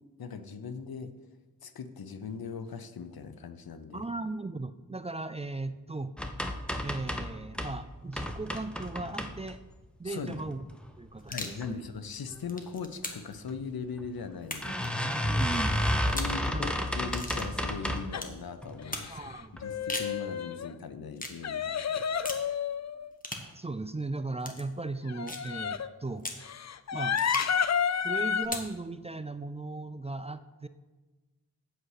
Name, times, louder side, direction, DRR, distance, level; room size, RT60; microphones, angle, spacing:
voice 1, 0.2-1.1 1.6-4.1 10.0-10.4 11.3-14.9 16.1-19.2 19.5-22.5, left 5 dB, 80° left, 10 dB, 0.7 m, -40 dB
voice 2, 3.9-6.2 6.8-9.6 10.0-10.7 11.0-11.9 15.3-15.7 16.5-16.7 19.1-19.7 23.5-26.2 26.9-27.2 28.0-30.7, right 2 dB, 20° right, 12 dB, 0.4 m, -37 dB
sound 1, 6.2-7.8 8.1-9.7 10.2-10.8 11.3-11.7 12.0-12.1 12.4-12.5 13.5-13.6 14.0-14.1 14.6-18.2 18.6-19.1 19.5-19.7 20.0-20.1, equal, 5° left, 0.8 m, -32 dB
sound 2, 11.2-11.6 12.3-13.3 14.4-14.9 16.0-16.4 17.1-17.5 18.2-18.4 18.9-19.1 19.7-20.2 21.2-21.4 22.2-22.5 23.2-23.5 24.4-24.6 25.3-25.5 26.2-26.4 27.2-27.6 28.4-28.7, left 2 dB, 25° left, 1.2 m, -38 dB
sound 3, 18.1-18.3 18.8-19.3 19.6-20.7 21.4-23.1 25.1-25.9 26.4-28.5, left 7 dB, 50° left, 0.5 m, -31 dB
8.1 x 7.6 x 4.8 m, 1.2 s
wide cardioid pair, 60°, 36 cm